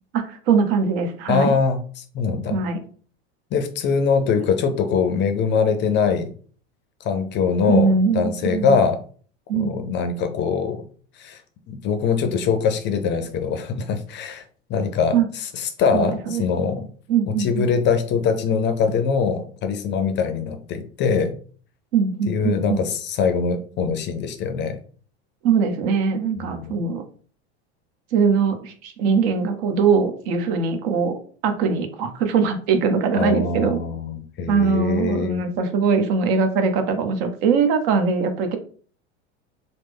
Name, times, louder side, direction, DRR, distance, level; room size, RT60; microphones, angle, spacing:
voice 1, 0.1-1.5 2.5-2.8 7.7-8.8 9.5-9.9 15.1-15.3 15.9-16.4 17.1-17.7 21.9-22.8 25.4-27.0 28.1-33.8 34.5-38.6, right 5 dB, 65° right, 7 dB, 0.8 m, -21 dB
voice 2, 1.3-2.6 3.5-6.3 7.0-9.0 9.5-10.9 11.2-11.4 11.7-14.4 14.7-16.9 17.3-21.3 22.3-24.8 26.4-26.8 33.2-35.4, left 5 dB, 35° left, 8 dB, 0.5 m, -23 dB
3.2 x 2.0 x 3.4 m, 0.44 s
supercardioid pair, 115°, 33 cm